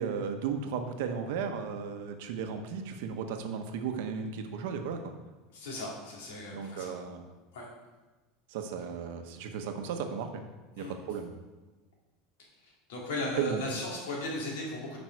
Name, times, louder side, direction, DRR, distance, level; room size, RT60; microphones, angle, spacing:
voice 1, 0.0-5.1 6.5-7.2 8.5-10.3 10.8-11.3 13.4-13.6, right 6 dB, 65° right, 6 dB, 0.9 m, -35 dB
voice 2, 5.5-7.0 7.5-7.7 10.8-11.0 12.6-15.0, left 1 dB, 85° left, -3 dB, 2.5 m, -37 dB
9.4 x 5.3 x 4.6 m, 1.2 s
supercardioid pair, 175°, 0 cm